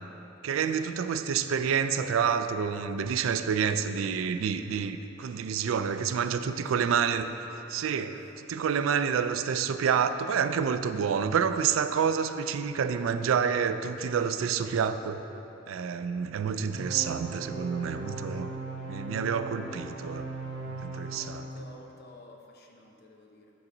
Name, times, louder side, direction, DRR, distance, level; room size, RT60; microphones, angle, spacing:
voice 1, 0.4-15.2 15.7-18.5 18.9-20.3 20.7-21.5, right 7 dB, 85° right, 10 dB, 0.3 m, -28 dB
voice 2, 6.4-7.0 7.9-8.1 21.2-23.5, left 2 dB, 55° left, 1 dB, 0.8 m, -51 dB
sound 1, 16.7-21.7, right 2 dB, 65° right, 1.5 m, -38 dB
8.5 x 3.9 x 6.0 m, 3.0 s
head